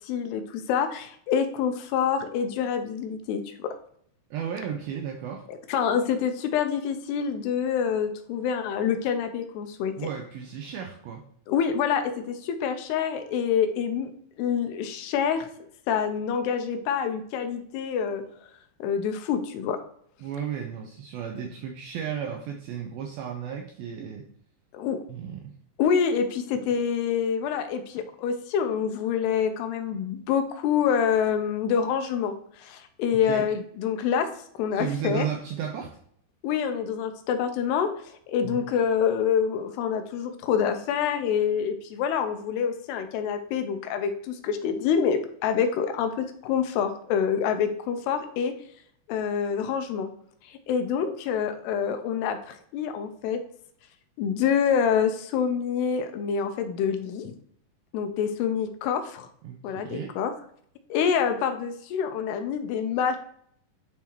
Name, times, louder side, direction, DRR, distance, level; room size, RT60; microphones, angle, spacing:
voice 1, 0.0-3.7 5.5-9.9 11.5-14.1 14.4-15.5 15.9-18.2 18.8-19.8 24.7-25.0 25.8-34.3 34.6-35.3 36.4-48.5 49.1-50.1 50.5-53.4 54.2-57.3 57.9-59.3 59.6-60.3 60.9-63.2, left 7 dB, 80° left, 7 dB, 2.6 m, -26 dB
voice 2, 4.3-5.5 10.0-11.2 20.2-24.2 25.1-25.5 33.1-33.5 34.7-36.0 38.4-38.6 59.4-59.6 59.8-60.2, right 8 dB, 90° right, 2 dB, 2.1 m, -34 dB
10.5 x 3.6 x 2.9 m, 0.65 s
omnidirectional pair, 4.9 m